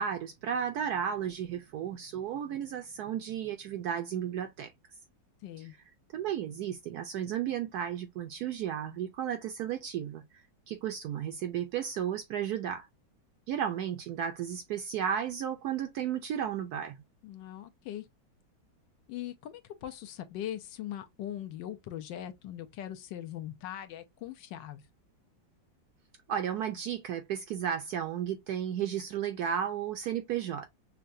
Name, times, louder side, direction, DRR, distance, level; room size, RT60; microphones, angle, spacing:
voice 1, 0.0-4.7 5.6-5.7 6.1-10.2 10.7-12.9 13.5-17.0 26.3-30.7, right 9 dB, 70° right, 0.9 m, -33 dB
voice 2, 5.4-5.8 17.2-18.1 19.1-24.8, left 11 dB, 75° left, 1.3 m, -40 dB
5.7 x 2.2 x 2.5 m
omnidirectional pair, 2.1 m